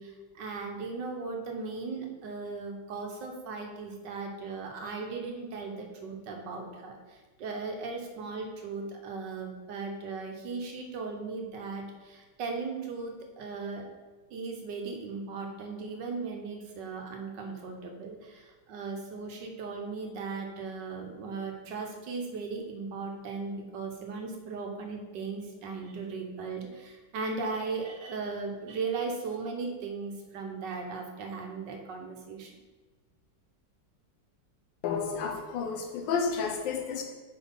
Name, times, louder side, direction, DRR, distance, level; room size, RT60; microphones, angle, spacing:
voice 1, 0.0-6.9 7.4-13.9 14.3-32.5, right 4 dB, 75° right, 2 dB, 1.5 m, -37 dB
voice 2, 34.8-37.0, left 5 dB, 90° left, 3 dB, 1.6 m, -31 dB
4.9 x 4.0 x 5.4 m, 1.3 s
omnidirectional pair, 2.0 m